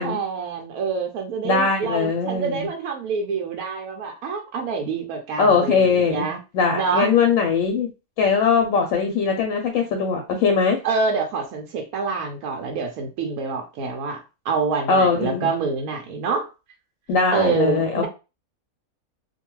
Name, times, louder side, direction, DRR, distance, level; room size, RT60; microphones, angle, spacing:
voice 1, 0.0-6.4 6.7-7.1 10.8-16.5 17.3-18.1, right 5 dB, 90° right, 2 dB, 1.1 m, -26 dB
voice 2, 1.4-2.7 5.4-7.9 8.2-10.8 14.9-15.5 17.1-18.1, left 5 dB, 75° left, 4 dB, 0.9 m, -20 dB
2.7 x 2.2 x 3.0 m, 0.29 s
omnidirectional pair, 1.5 m